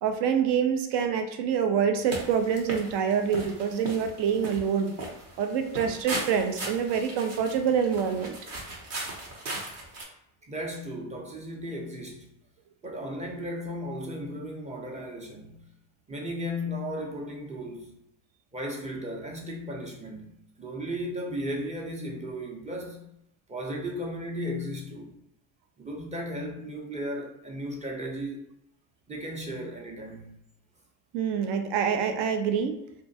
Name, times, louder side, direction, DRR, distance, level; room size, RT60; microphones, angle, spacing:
voice 1, 0.0-4.9 5.4-8.4 31.1-32.7, right 7 dB, 65° right, 0.6 m, -26 dB
sound 1, 2.0-10.0, right 2 dB, 45° right, 0.9 m, -38 dB
voice 2, 10.5-12.3 12.8-15.6 16.1-17.9 18.5-20.3 20.6-23.1 23.5-25.1 25.8-28.4 29.1-30.3, equal, 15° right, 0.6 m, -35 dB
2.3 x 2.2 x 2.7 m
hypercardioid pair, 70°, 45 cm